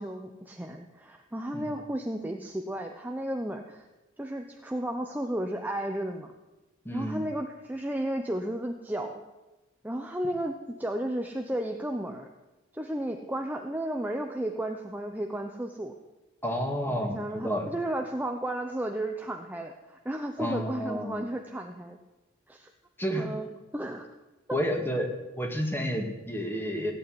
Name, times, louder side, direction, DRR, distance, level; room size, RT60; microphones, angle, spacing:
voice 1, 0.0-3.8 4.2-6.3 6.9-9.2 9.8-12.3 12.7-15.9 16.9-22.0 22.5-22.7 23.2-23.5 23.7-24.1 24.5-24.6, right 1 dB, 10° right, 3 dB, 0.9 m, -33 dB
voice 2, 6.8-7.2 16.4-17.7 20.4-21.3 23.0-23.3 24.5-25.1 25.4-26.9, equal, 10° left, 2 dB, 2.5 m, -30 dB
17.0 x 8.7 x 9.6 m, 1.1 s
head